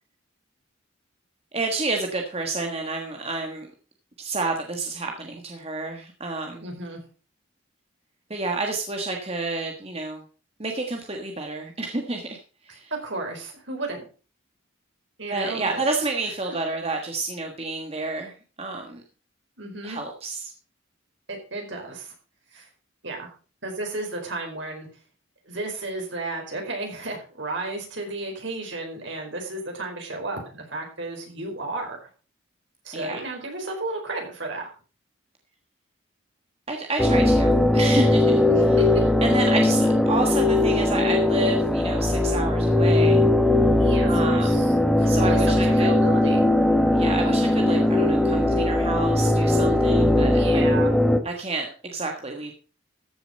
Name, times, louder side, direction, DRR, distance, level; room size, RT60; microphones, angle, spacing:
voice 1, 1.5-3.7 4.2-6.6 8.3-10.2 10.6-12.4 12.6-12.9 15.3-19.0 19.8-20.5 32.9-33.2 36.7-38.4 39.2-43.3 44.1-44.6 45.0-45.9 46.9-50.6 51.2-52.5, right 3 dB, 30° right, 3 dB, 1.5 m, -29 dB
voice 2, 6.6-7.0 12.7-14.0 15.2-15.9 19.6-20.0 21.3-22.1 22.5-22.7 23.0-23.3 23.6-24.9 25.4-32.1 32.8-34.7 38.5-38.8 43.8-46.4 47.6-47.8 50.3-50.9, right 2 dB, 65° right, 2 dB, 4.6 m, -33 dB
sound 1, 37.0-51.2, left 1 dB, ahead, 1.4 m, -19 dB
14.5 x 6.9 x 5.4 m, 0.37 s
head